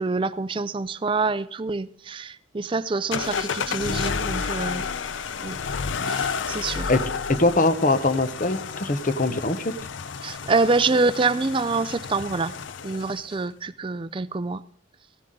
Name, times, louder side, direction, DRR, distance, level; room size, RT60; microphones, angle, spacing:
voice 1, 0.0-4.9 5.4-5.6 6.1-6.9 10.2-12.5 12.8-14.6, right 3 dB, 25° right, 0.4 m, -26 dB
sound 1, 3.1-13.3, left 6 dB, 80° left, 0.5 m, -31 dB
voice 2, 7.3-9.7, left 2 dB, 40° left, 0.9 m, -22 dB
16.0 x 11.5 x 3.8 m
head